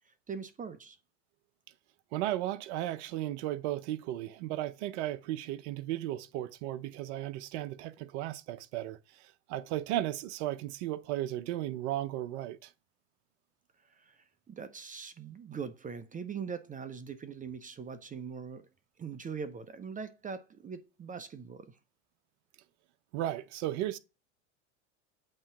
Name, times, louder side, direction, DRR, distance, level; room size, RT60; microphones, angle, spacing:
voice 1, 0.3-1.0 14.1-14.2 14.5-18.6 19.0-21.7, right 6 dB, 20° right, 0.8 m, -41 dB
voice 2, 2.1-12.7 23.1-24.0, right 14 dB, 60° right, 0.7 m, -35 dB
8.6 x 3.1 x 5.6 m
hypercardioid pair, 90°, 37 cm